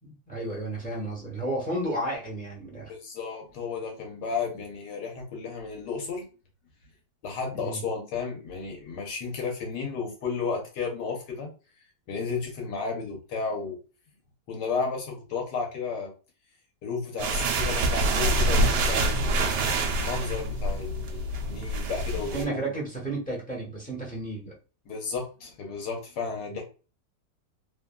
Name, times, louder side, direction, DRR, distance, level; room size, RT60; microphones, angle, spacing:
voice 1, 0.0-2.9 7.5-7.8 22.1-24.5, right 1 dB, 5° left, -5 dB, 0.7 m, -32 dB
voice 2, 2.9-6.2 7.2-11.5 12.1-13.8 14.5-16.1 16.8-19.4 19.9-22.7 24.9-26.6, left 5 dB, 80° left, 1 dB, 1.5 m, -33 dB
sound 1, 17.2-22.4, right 2 dB, 80° right, 1.2 m, -26 dB
3.2 x 2.4 x 2.2 m, 0.34 s
omnidirectional pair, 1.8 m